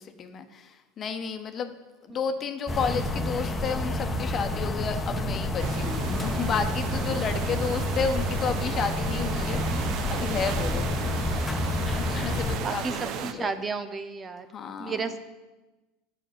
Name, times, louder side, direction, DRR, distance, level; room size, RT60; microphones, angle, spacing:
voice 1, 0.0-1.7 2.0-9.6 10.1-10.9 12.0-13.5 14.5-15.2, left 6 dB, 35° left, 7 dB, 1.2 m, -31 dB
sound 1, 2.7-12.6, left 1 dB, 15° left, 1.2 m, -29 dB
sound 2, 5.6-13.3, right 9 dB, 55° right, 0.9 m, -36 dB
voice 2, 12.6-14.5 14.8-15.2, right 4 dB, 25° right, 10 dB, 0.8 m, -32 dB
11.0 x 6.4 x 9.2 m, 1.1 s
supercardioid pair, 115°, 0 cm